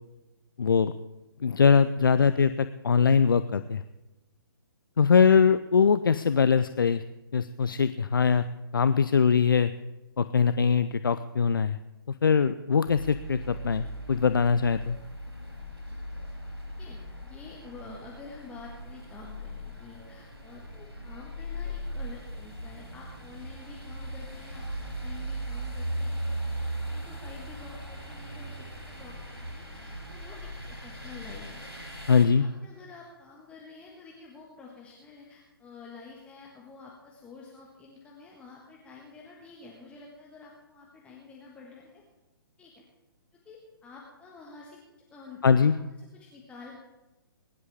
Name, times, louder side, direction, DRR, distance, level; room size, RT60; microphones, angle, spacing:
voice 1, 0.6-0.9 1.4-3.8 5.0-7.0 7.3-8.4 8.7-9.7 10.2-11.8 12.1-15.0 32.1-32.5 45.4-45.7, left 6 dB, 60° left, 12 dB, 0.5 m, -22 dB
sound 1, 12.8-32.3, right 1 dB, 85° right, 3.6 m, -38 dB
voice 2, 16.8-31.7 32.2-42.0 42.6-42.8 43.3-44.8 45.1-46.8, left 4 dB, 10° left, -2 dB, 1.5 m, -49 dB
21.5 x 11.0 x 3.6 m, 1.0 s
figure-of-eight pair, 130°, 13 cm